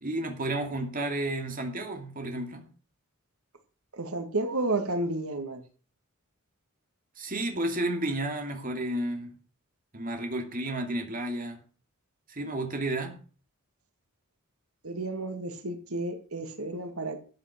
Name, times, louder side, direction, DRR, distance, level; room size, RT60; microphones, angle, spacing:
voice 1, 0.0-2.7 7.2-9.4 9.9-11.6 12.3-13.2, right 1 dB, 40° right, 2.6 m, -32 dB
voice 2, 3.9-5.6 14.8-17.2, right 2 dB, 90° right, 2.2 m, -31 dB
14.0 x 8.2 x 5.9 m
head